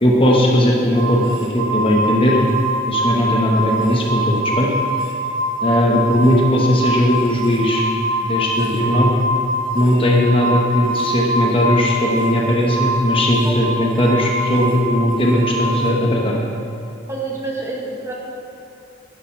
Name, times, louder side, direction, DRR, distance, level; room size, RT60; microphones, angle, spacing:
voice 1, 0.0-2.4 2.9-4.7 5.6-7.8 8.2-9.1 9.7-16.3, equal, 25° left, -2 dB, 1.2 m, -17 dB
sound 1, 0.9-15.9, right 1 dB, 70° right, 1.5 m, -24 dB
voice 2, 17.1-18.1, right 3 dB, 15° right, -2 dB, 1.6 m, -27 dB
11.5 x 10.5 x 4.7 m, 2.5 s
head